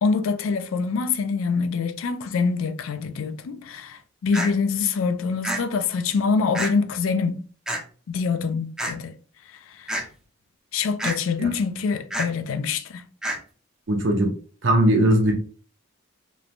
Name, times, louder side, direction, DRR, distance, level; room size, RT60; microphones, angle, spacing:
voice 1, 0.0-7.4 8.1-9.1 9.8-9.9 10.7-13.0, left 5 dB, 80° left, 0.3 m, -25 dB
sound 1, 4.3-4.5 5.4-5.6 6.5-6.7 7.7-7.8 8.8-8.9 9.9-10.1 11.0-11.1 12.1-12.3 13.2-13.4, right 1 dB, 5° right, 0.4 m, -27 dB
voice 2, 13.9-14.3 14.6-15.3, right 1 dB, 60° right, 0.7 m, -19 dB
3.0 x 2.1 x 2.5 m
head